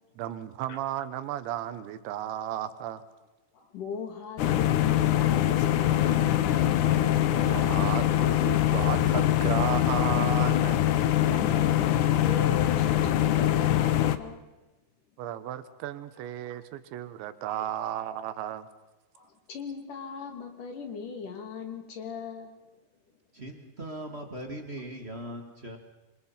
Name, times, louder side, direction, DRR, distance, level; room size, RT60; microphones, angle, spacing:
voice 1, 0.2-3.0 7.3-10.8 15.2-18.7, right 11 dB, 90° right, 12 dB, 3.6 m, -34 dB
voice 2, 3.5-6.9 11.3-14.4 19.1-22.5, left 5 dB, 50° left, 5 dB, 4.2 m, -39 dB
sound 1, 4.4-14.2, left 12 dB, 85° left, 1.7 m, -23 dB
voice 3, 23.3-25.8, right 1 dB, 40° right, 3 dB, 0.9 m, -39 dB
27.0 x 25.5 x 5.8 m, 1.0 s
omnidirectional pair, 5.0 m